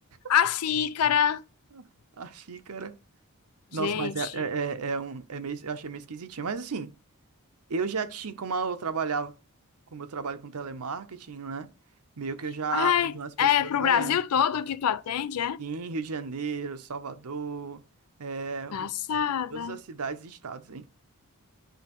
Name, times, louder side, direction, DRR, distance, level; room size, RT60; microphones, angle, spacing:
voice 1, 0.3-1.4 3.7-4.3 12.7-15.6 18.7-19.8, left 9 dB, 85° left, 0.4 m, -25 dB
voice 2, 2.2-3.0 3.7-6.9 7.7-9.3 9.9-11.7 12.2-14.2 15.6-17.8 18.2-18.9 19.5-20.9, right 5 dB, 85° right, 0.7 m, -34 dB
10.5 x 3.5 x 3.0 m
head